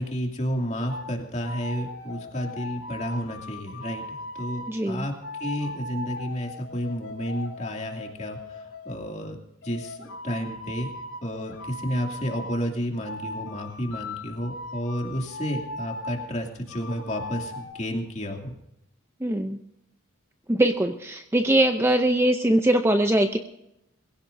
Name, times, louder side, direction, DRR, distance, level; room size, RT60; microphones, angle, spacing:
voice 1, 0.0-5.1 5.4-9.4 9.6-10.9 11.2-18.5, equal, 35° left, 1 dB, 2.5 m, -31 dB
sound 1, 0.9-1.1 1.4-4.7 5.2-9.0 9.6-12.6 13.0-16.3 16.7-17.7, left 2 dB, 80° left, 3.2 m, -38 dB
voice 2, 4.7-5.1 19.2-19.6 20.5-23.4, right 1 dB, 10° right, 6 dB, 0.6 m, -22 dB
22.5 x 16.5 x 2.7 m, 0.86 s
head